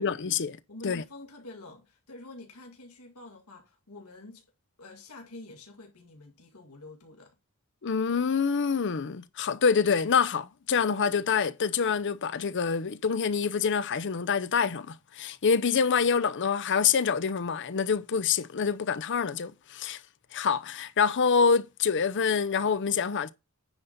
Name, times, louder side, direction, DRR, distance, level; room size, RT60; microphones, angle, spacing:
voice 1, 0.0-0.5 0.8-1.0 7.8-20.0 20.3-23.3, left 6 dB, 55° left, 0.6 m, -26 dB
voice 2, 0.7-4.4 4.8-7.4, left 2 dB, 85° left, 2.0 m, -47 dB
9.7 x 4.1 x 5.2 m
head